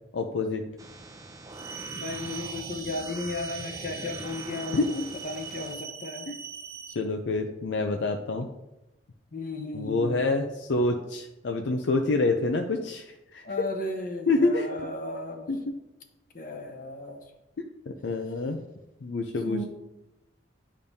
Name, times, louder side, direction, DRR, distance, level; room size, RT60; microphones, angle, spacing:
voice 1, 0.1-0.6 4.7-5.0 6.3-6.4 7.0-8.5 9.7-13.4 14.3-14.7 15.5-15.6 18.0-18.6 19.0-19.6, left 3 dB, 75° left, 4 dB, 0.5 m, -27 dB
sound 1, 0.8-5.8, right 2 dB, 20° right, 0.6 m, -43 dB
sound 2, 1.5-6.9, right 6 dB, 60° right, 1.2 m, -41 dB
voice 2, 1.9-6.3 9.3-10.3 13.4-15.6 16.3-17.3 19.5-19.6, left 2 dB, 50° left, 4 dB, 1.0 m, -35 dB
10.0 x 5.2 x 2.7 m, 0.96 s
head